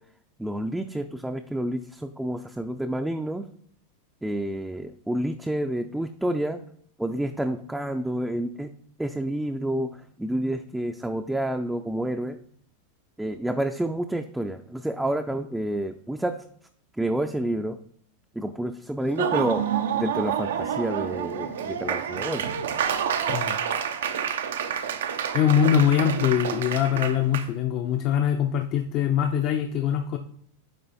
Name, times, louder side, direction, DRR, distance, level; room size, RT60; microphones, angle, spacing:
voice 1, 0.4-3.4 4.2-6.6 7.0-8.7 9.0-9.9 10.2-12.4 13.2-16.3 17.0-17.8 18.4-19.6 20.0-22.4, right 1 dB, 5° right, 5 dB, 0.4 m, -29 dB
Laughter / Applause, 19.0-27.5, right 8 dB, 85° right, 0.7 m, -28 dB
voice 2, 25.3-30.2, left 9 dB, 45° left, 5 dB, 0.6 m, -23 dB
8.7 x 3.0 x 4.2 m, 0.63 s
hypercardioid pair, 125°, 0 cm